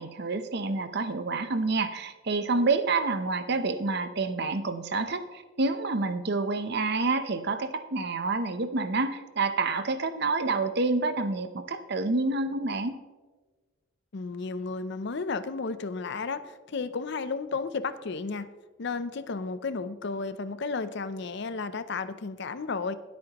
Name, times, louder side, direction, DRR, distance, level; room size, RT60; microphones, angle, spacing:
voice 1, 0.0-13.0, right 3 dB, 50° right, 10 dB, 0.7 m, -28 dB
voice 2, 14.1-18.5 18.8-23.0, left 4 dB, 55° left, 13 dB, 0.5 m, -33 dB
20.5 x 8.6 x 3.0 m, 1.3 s
head